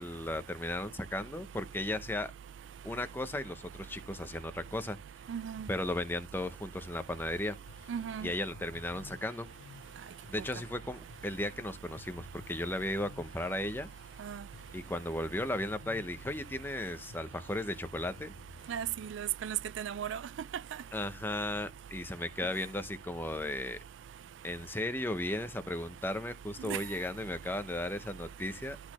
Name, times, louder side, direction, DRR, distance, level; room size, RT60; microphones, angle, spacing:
voice 1, 0.0-2.3 2.8-5.0 5.7-7.6 8.2-9.5 10.3-13.9 14.7-18.3 20.9-23.8 24.4-28.8, left 1 dB, 10° left, 0.6 m, -35 dB
voice 2, 5.3-5.7 7.9-8.3 14.2-14.4 18.7-20.2 26.7-26.8, right 10 dB, 70° right, 0.3 m, -35 dB
sound 1, 7.1-19.2, left 3 dB, 75° left, 0.7 m, -55 dB
12.0 x 4.2 x 3.0 m
head